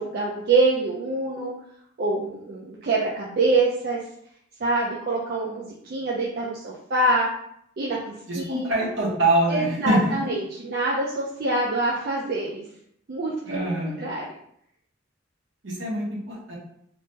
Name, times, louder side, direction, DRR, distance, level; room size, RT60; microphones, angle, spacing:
voice 1, 0.0-1.5 2.0-4.0 4.6-7.3 7.8-8.6 9.5-12.6 13.1-14.2, right 2 dB, 50° right, -4 dB, 0.4 m, -25 dB
voice 2, 8.3-10.3 13.4-14.1 15.6-16.6, right 1 dB, 70° right, -4 dB, 1.0 m, -24 dB
3.4 x 2.1 x 2.8 m, 0.70 s
head